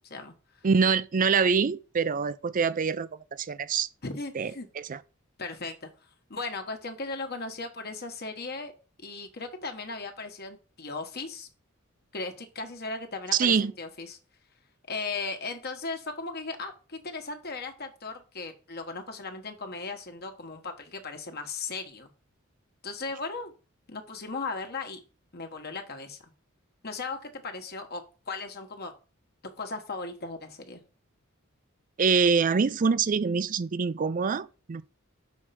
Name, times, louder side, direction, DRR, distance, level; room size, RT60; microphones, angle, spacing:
voice 1, 0.6-3.1 3.4-3.9 4.3-4.5 4.9-5.0 13.3-13.7 32.0-34.8, right 5 dB, 40° right, 0.4 m, -25 dB
voice 2, 4.0-4.7 5.4-5.9 6.3-8.7 9.0-11.5 12.1-14.2 14.9-22.1 22.8-23.5 23.9-25.0 25.3-26.3 26.8-28.9 29.4-30.8, left 3 dB, 50° left, 1.3 m, -37 dB
6.4 x 4.5 x 5.7 m
head